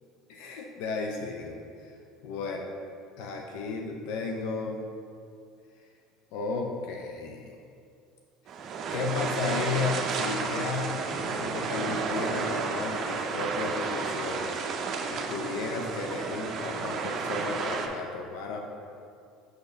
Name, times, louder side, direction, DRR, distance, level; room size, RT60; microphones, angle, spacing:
voice 1, 0.3-2.0 2.2-2.7 3.2-4.8 6.3-7.6 8.9-14.6 15.1-18.6, left 4 dB, 75° left, 1 dB, 0.5 m, -34 dB
sound 1, 8.5-17.9, right 4 dB, 50° right, 0.6 m, -32 dB
6.4 x 4.2 x 3.4 m, 2.4 s
supercardioid pair, 90°, 0 cm